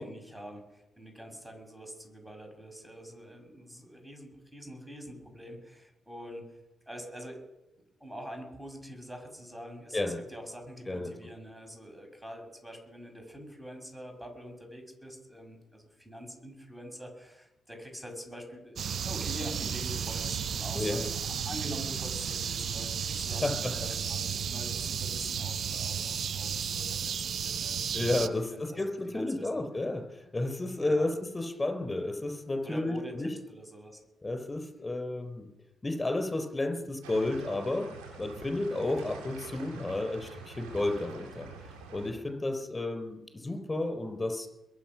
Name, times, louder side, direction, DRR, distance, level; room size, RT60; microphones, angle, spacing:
voice 1, 0.0-6.5 6.9-7.4 8.0-28.0 28.4-29.5 30.8-31.1 32.6-34.0, equal, 10° right, 3 dB, 6.3 m, -45 dB
sound 1, 18.8-28.3, right 7 dB, 60° right, 0.8 m, -33 dB
voice 2, 20.7-21.0 23.4-23.7 27.9-33.3 34.2-35.5 35.8-37.9 38.2-41.5 41.9-44.5, left 2 dB, 20° left, 5 dB, 4.6 m, -32 dB
sound 2, 37.0-42.1, right 4 dB, 85° right, 3.5 m, -47 dB
22.5 x 7.9 x 6.1 m, 0.93 s
hypercardioid pair, 45°, 0 cm